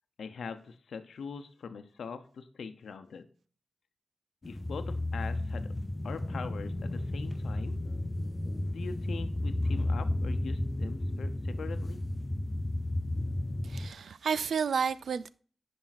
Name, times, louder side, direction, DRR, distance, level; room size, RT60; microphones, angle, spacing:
voice 1, 0.2-3.3 4.4-5.7 6.0-7.8 8.7-12.0, left 5 dB, 85° left, 0.9 m, -42 dB
sound 1, 4.4-13.9, left 1 dB, 20° left, 0.7 m, -33 dB
voice 2, 13.6-15.3, right 6 dB, 85° right, 0.4 m, -31 dB
10.5 x 5.5 x 4.2 m
wide cardioid pair, 100°, 0 cm